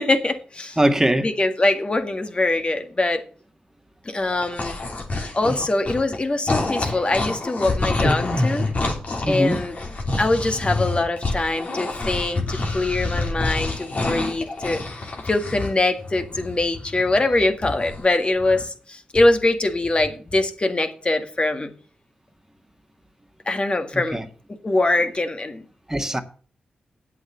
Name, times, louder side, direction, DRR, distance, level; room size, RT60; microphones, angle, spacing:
voice 1, 0.0-0.8 1.2-3.2 4.1-4.8 5.3-8.6 9.3-9.7 10.2-14.8 15.3-21.7 23.5-24.2 24.6-25.6, left 2 dB, 35° left, 1.9 m, -23 dB
voice 2, 0.8-1.3 6.8-6.9 9.2-9.6 23.9-24.2 25.9-26.2, right 1 dB, 15° right, 1.6 m, -21 dB
sound 1, 4.2-6.2 6.5-15.7 16.0-18.0 18.4-18.6, left 2 dB, 55° left, 3.1 m, -27 dB
8.6 x 8.0 x 6.9 m
supercardioid pair, 45°, 3 cm